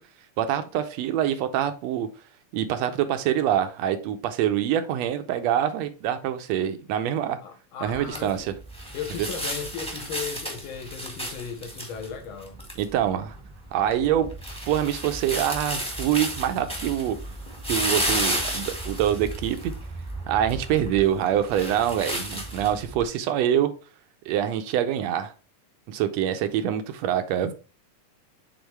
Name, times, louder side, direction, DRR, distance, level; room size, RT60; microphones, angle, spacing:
voice 1, 0.4-2.1 2.5-7.4 7.8-8.4 12.8-13.4 13.7-14.3 14.7-17.2 17.7-19.7 20.3-23.7 24.3-25.3 25.9-27.5, right 10 dB, 80° right, 1.7 m, -25 dB
voice 2, 7.4-8.5 8.9-12.6 22.1-22.2, left 6 dB, 60° left, 1.6 m, -36 dB
sound 1, 7.9-23.0, equal, 5° left, 1.0 m, -33 dB
8.0 x 3.9 x 3.3 m
omnidirectional pair, 3.3 m